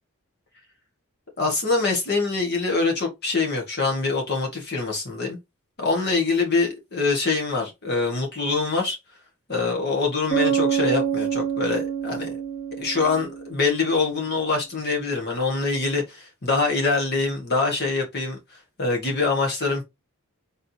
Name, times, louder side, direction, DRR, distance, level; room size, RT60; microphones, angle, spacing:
voice 1, 1.4-5.4 5.8-9.0 9.5-12.3 12.8-18.4 18.8-19.8, left 3 dB, 50° left, 1.5 m, -24 dB
Bass guitar, 10.3-14.0, right 8 dB, 35° left, 1.6 m, -26 dB
4.2 x 3.5 x 2.8 m
head